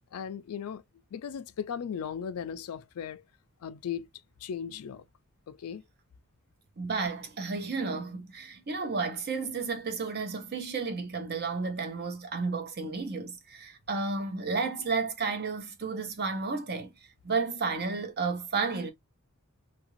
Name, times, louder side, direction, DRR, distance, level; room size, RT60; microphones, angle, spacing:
voice 1, 0.1-0.8 1.1-3.2 3.6-4.1 4.4-5.0 5.5-5.8, left 7 dB, 85° left, 0.4 m, -37 dB
voice 2, 6.8-16.9 17.2-18.9, right 4 dB, 45° right, 0.8 m, -32 dB
2.8 x 2.5 x 2.9 m
head